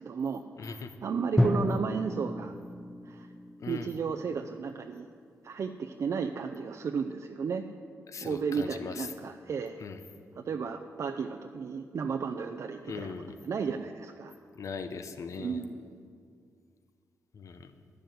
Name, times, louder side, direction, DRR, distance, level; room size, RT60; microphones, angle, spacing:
voice 1, 0.0-2.5 3.0-3.3 3.7-5.1 5.4-7.7 8.2-9.8 10.4-13.1 13.4-14.3 15.4-16.0, right 5 dB, 60° right, 4 dB, 0.5 m, -34 dB
voice 2, 0.6-0.9 3.6-3.9 8.1-9.1 9.8-10.0 12.9-13.3 14.5-15.6 17.3-17.7, left 5 dB, 60° left, 9 dB, 0.8 m, -40 dB
Drum, 1.4-5.2, left 1 dB, 10° left, 0.6 m, -32 dB
10.5 x 6.9 x 7.8 m, 2.3 s
cardioid pair, 65°, 6 cm